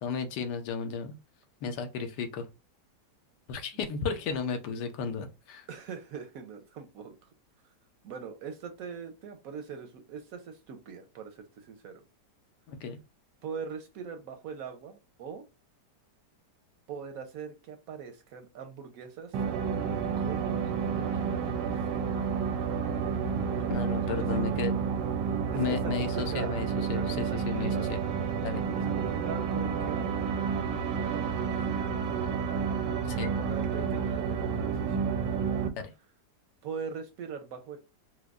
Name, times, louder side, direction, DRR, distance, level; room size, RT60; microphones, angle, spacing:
voice 1, 0.0-1.1 1.6-2.5 3.5-5.7 12.7-13.0 23.7-24.7 25.5-28.0 28.4-28.6 33.0-33.3 35.8-35.9, left 5 dB, 80° left, 1.2 m, -34 dB
voice 2, 5.7-7.3 8.0-12.0 13.4-15.4 16.9-19.4 20.2-21.8 23.5-23.7 24.0-24.6 25.2-27.9 28.7-30.0 31.0-32.0 33.2-35.1 36.6-37.8, right 6 dB, 70° right, 0.9 m, -42 dB
sound 1, 19.3-35.7, right 6 dB, 90° right, 1.2 m, -30 dB
4.5 x 2.1 x 2.3 m
omnidirectional pair, 1.8 m